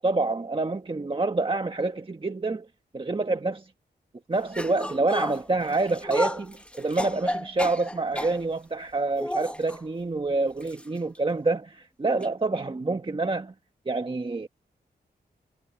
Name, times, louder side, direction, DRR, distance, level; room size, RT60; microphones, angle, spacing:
voice 1, 0.0-2.7 2.9-3.7 4.3-13.5 13.8-14.5, right 3 dB, 30° right, 1.4 m, -27 dB
sound 1, 4.5-8.4 9.2-9.8 10.6-10.8 11.1-11.2 12.2-12.3, left 1 dB, 5° left, 1.3 m, -32 dB
cardioid pair, 70°, 18 cm